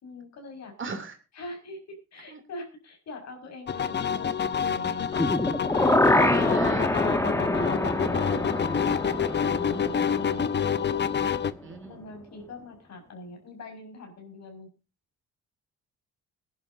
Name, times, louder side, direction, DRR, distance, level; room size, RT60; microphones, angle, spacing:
voice 1, 0.0-0.7 1.4-5.6 7.2-10.5 10.8-11.0 11.8-14.7, left 2 dB, 60° left, 3 dB, 5.5 m, -44 dB
voice 2, 0.8-1.2 2.3-2.4 6.0-6.9 11.6-12.0, right 4 dB, 40° right, 7 dB, 2.9 m, -38 dB
sound 1, 3.7-11.5, left 7 dB, 35° left, 0.8 m, -28 dB
sound 2, 5.1-11.1 11.5-11.6, left 1 dB, 10° left, 1.8 m, -26 dB
21.0 x 11.0 x 2.7 m, 0.31 s
cardioid pair, 90°, 30 cm